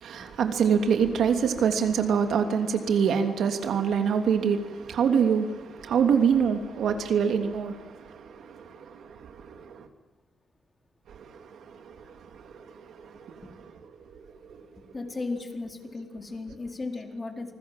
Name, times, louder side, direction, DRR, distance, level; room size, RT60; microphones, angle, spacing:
voice 1, 0.0-9.9 11.1-13.4 14.1-14.2 14.5-14.6, right 7 dB, 80° right, 3.0 m, -26 dB
voice 2, 14.9-17.5, left 3 dB, 30° left, 4.2 m, -36 dB
27.5 x 20.5 x 7.5 m
cardioid pair, 95°, 0 cm